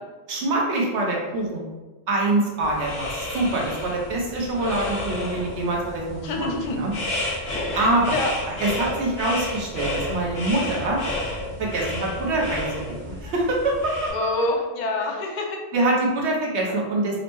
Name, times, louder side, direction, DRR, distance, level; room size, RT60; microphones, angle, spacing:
voice 1, 0.3-1.6 2.1-6.9 7.7-8.2 8.4-11.0 11.6-14.1 15.7-17.2, right 2 dB, 70° right, -2 dB, 1.1 m, -25 dB
sound 1, 2.6-14.1, left 1 dB, 80° left, 1.4 m, -31 dB
voice 2, 6.2-6.8 7.6-8.3 14.1-15.6 16.7-16.8, left 2 dB, 50° left, 1 dB, 0.6 m, -27 dB
5.4 x 2.1 x 3.0 m, 1.2 s
omnidirectional pair, 1.2 m